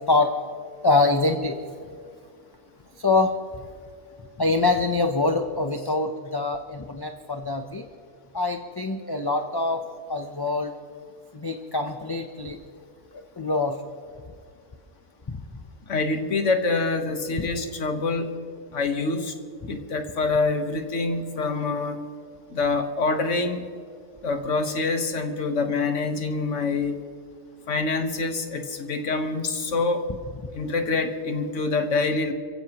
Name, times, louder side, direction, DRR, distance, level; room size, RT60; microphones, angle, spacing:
voice 1, 0.8-1.5 3.0-3.3 4.4-7.8 8.3-9.8 10.1-10.7 11.3-12.6 13.4-13.8 15.3-15.4 17.4-17.5, left 3 dB, 25° left, 4 dB, 0.6 m, -24 dB
voice 2, 15.9-18.4 18.7-19.3 19.7-22.0 22.5-23.7 24.2-27.0 27.7-30.0 30.5-32.3, left 3 dB, 85° left, 6 dB, 1.6 m, -26 dB
27.0 x 15.5 x 3.0 m, 2.2 s
omnidirectional pair, 1.2 m